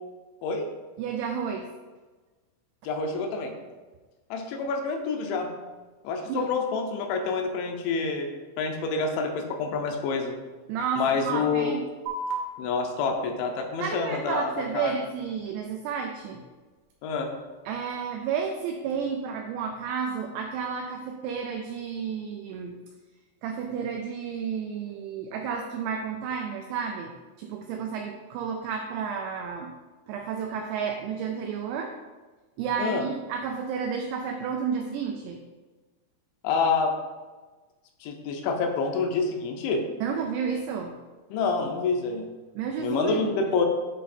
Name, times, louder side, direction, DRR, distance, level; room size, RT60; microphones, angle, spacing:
voice 1, 1.0-1.7 6.3-6.5 10.7-11.8 13.8-16.4 17.7-22.8 23.4-27.1 27.4-29.8 30.1-31.9 32.6-35.4 40.0-40.9 42.6-43.3, right 6 dB, 90° right, 3 dB, 2.4 m, -31 dB
voice 2, 2.8-3.5 4.3-5.5 6.0-8.3 8.6-10.4 11.0-11.7 12.6-15.0 17.0-17.3 32.8-33.1 36.4-36.9 38.0-39.8 41.3-42.3 42.8-43.7, left 4 dB, 80° left, 3 dB, 2.9 m, -27 dB
sound 1, 12.1-19.1, right 2 dB, 75° right, 2.3 m, -42 dB
9.2 x 3.3 x 4.3 m, 1.3 s
omnidirectional pair, 5.5 m